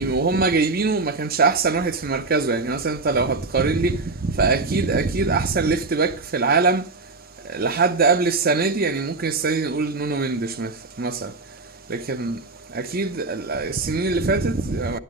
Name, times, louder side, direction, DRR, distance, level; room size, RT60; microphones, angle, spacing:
voice 1, 0.0-6.8 7.5-10.7 11.0-11.3 11.9-12.4 12.7-15.0, right 4 dB, 45° right, 0.7 m, -22 dB
11.5 x 10.0 x 3.8 m
head